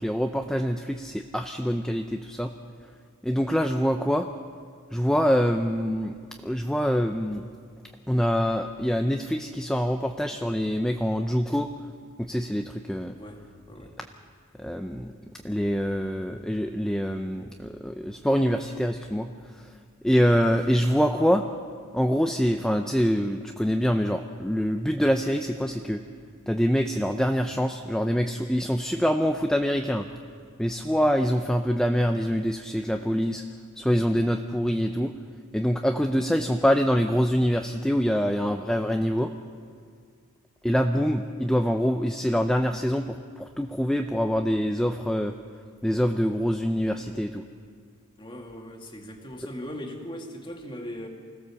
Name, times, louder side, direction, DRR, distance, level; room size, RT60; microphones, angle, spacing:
voice 1, 0.0-2.5 3.2-4.3 4.9-6.2 6.4-7.4 8.1-11.7 12.2-13.1 14.6-15.1 15.4-19.3 19.6-19.7 20.0-21.4 21.9-26.0 26.5-30.1 30.6-33.4 33.8-35.1 35.5-39.3 40.6-45.3 45.8-47.4, equal, 5° left, 5 dB, 0.6 m, -25 dB
voice 2, 13.2-14.0 38.1-38.3 48.2-51.1, equal, 20° left, 2 dB, 2.1 m, -39 dB
25.0 x 17.0 x 7.1 m, 2.1 s
head